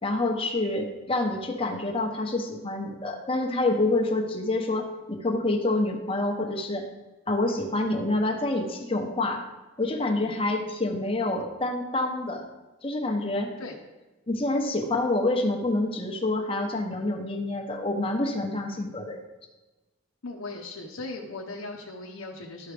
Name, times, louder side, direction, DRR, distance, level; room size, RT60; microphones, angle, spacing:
voice 1, 0.0-6.8 7.3-9.4 9.8-12.4 12.8-13.5 14.3-19.2, left 2 dB, 25° left, 2 dB, 0.9 m, -27 dB
voice 2, 20.2-22.7, left 3 dB, 90° left, -1 dB, 0.8 m, -38 dB
12.5 x 4.7 x 3.4 m, 1.1 s
head